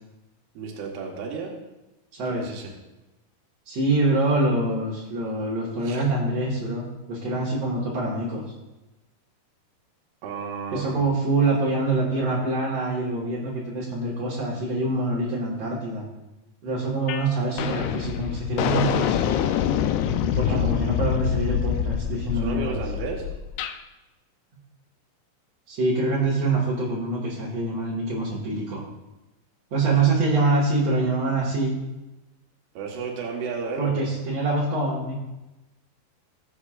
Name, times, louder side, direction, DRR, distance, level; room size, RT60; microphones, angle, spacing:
voice 1, 0.5-1.5 2.3-2.7 5.8-6.0 10.2-11.0 20.5-20.7 22.3-23.3 29.9-30.0 32.7-34.1, right 5 dB, 80° right, 0 dB, 3.4 m, -33 dB
voice 2, 2.1-2.5 3.7-8.4 10.7-16.1 16.6-19.4 20.2-22.8 25.7-28.8 29.7-31.8 33.8-35.2, right 2 dB, 50° right, -7 dB, 2.4 m, -25 dB
sound 1, 17.1-17.3 17.6-23.8, left 9 dB, 80° left, 2.6 m, -26 dB
20.5 x 8.1 x 2.5 m, 1.0 s
omnidirectional pair, 4.6 m